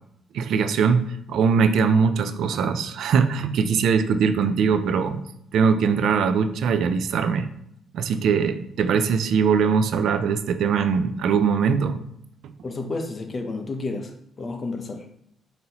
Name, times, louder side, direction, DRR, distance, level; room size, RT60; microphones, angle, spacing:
voice 1, 0.3-5.2 5.5-7.5 7.9-12.0, right 6 dB, 75° right, 10 dB, 0.3 m, -21 dB
voice 2, 12.6-15.1, left 3 dB, 35° left, 6 dB, 0.6 m, -31 dB
5.3 x 2.7 x 2.9 m, 0.73 s
cardioid pair, 90°, 0 cm